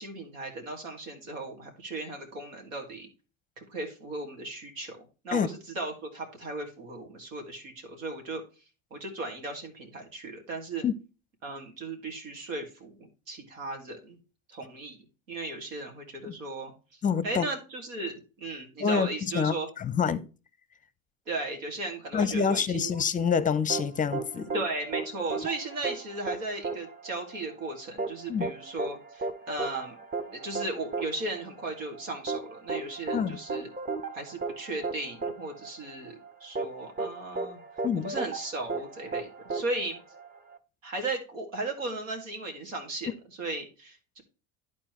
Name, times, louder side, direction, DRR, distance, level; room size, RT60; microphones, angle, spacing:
voice 1, 0.0-3.1 3.6-8.4 8.9-10.8 11.4-14.2 14.5-19.7 21.3-22.9 24.5-30.0 30.3-33.7 34.1-37.6 38.0-40.0 40.8-43.1 43.4-44.2, right 2 dB, 85° right, 2.1 m, -36 dB
voice 2, 17.0-17.5 18.8-19.1 19.3-20.3 22.1-24.5 28.3-28.5 33.1-33.4 37.8-38.1, left 6 dB, 20° left, 0.6 m, -26 dB
sound 1, 23.7-40.6, right 3 dB, 25° right, 1.0 m, -35 dB
11.5 x 4.3 x 3.0 m
hypercardioid pair, 80°, 38 cm